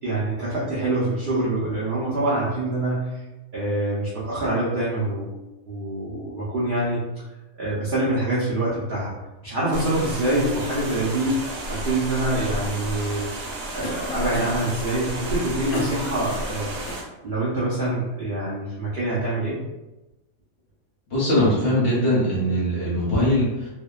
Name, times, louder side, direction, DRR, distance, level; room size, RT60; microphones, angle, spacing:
voice 1, 0.0-3.2 3.5-5.3 5.7-7.0 7.6-9.1 9.4-13.3 13.7-16.7 17.2-19.6, right 1 dB, 80° right, -8 dB, 0.4 m, -25 dB
sound 1, 9.7-17.0, right 1 dB, 65° right, 0.9 m, -32 dB
Cough, 13.8-14.7 15.3-17.1, left 3 dB, 80° left, 1.1 m, -34 dB
voice 2, 21.1-23.7, left 1 dB, 50° left, -7 dB, 0.8 m, -21 dB
2.7 x 2.1 x 2.2 m, 1.0 s
omnidirectional pair, 1.7 m